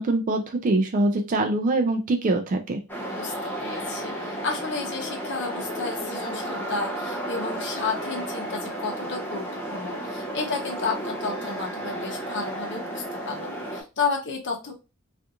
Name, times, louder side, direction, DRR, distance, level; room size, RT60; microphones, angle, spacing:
voice 1, 0.0-2.8, right 2 dB, 40° right, 3 dB, 0.3 m, -23 dB
sound 1, 2.9-13.8, right 1 dB, 10° left, 0.6 m, -33 dB
voice 2, 3.6-9.4 9.7-14.7, left 4 dB, 55° left, 2 dB, 0.7 m, -32 dB
2.5 x 2.4 x 2.7 m, 0.28 s
head